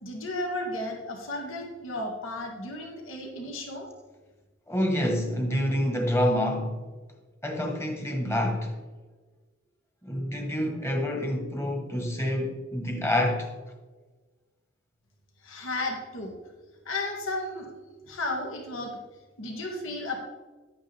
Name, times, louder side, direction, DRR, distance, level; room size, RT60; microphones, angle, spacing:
voice 1, 0.0-3.9 15.4-16.3 16.9-17.7 18.1-19.0 19.4-20.2, left 2 dB, 80° left, 2.0 m, -33 dB
voice 2, 4.7-6.8 7.4-8.8 10.0-13.5, left 1 dB, 15° left, 1.3 m, -27 dB
11.0 x 8.9 x 3.5 m
head